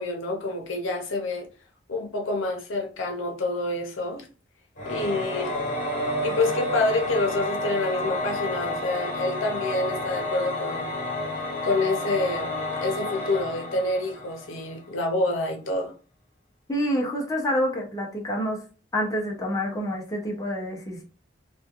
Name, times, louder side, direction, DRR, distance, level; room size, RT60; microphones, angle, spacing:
voice 1, 0.0-1.5 1.9-4.3 4.8-5.5 6.2-10.9 11.6-12.5 12.8-15.9, left 2 dB, 85° left, 0.6 m, -27 dB
Singing / Musical instrument, 4.8-14.8, left 1 dB, 45° left, 1.3 m, -30 dB
voice 2, 16.7-18.6 18.9-21.0, equal, 20° left, 0.6 m, -27 dB
3.0 x 2.3 x 2.4 m
head